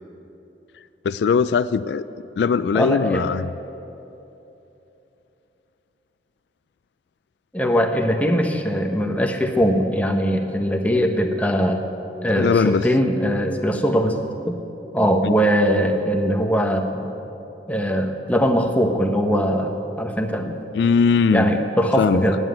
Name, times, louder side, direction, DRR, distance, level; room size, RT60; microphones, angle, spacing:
voice 1, 1.0-2.1 2.4-3.5 12.4-12.9 15.2-15.4 20.7-21.5 22.0-22.2, left 5 dB, 70° left, 15 dB, 0.3 m, -20 dB
voice 2, 2.7-3.3 7.5-11.8 12.2-14.1 14.5-14.6 14.9-17.1 17.7-20.6 21.3-22.4, equal, 10° left, 3 dB, 1.1 m, -21 dB
13.5 x 9.8 x 9.0 m, 3.0 s
head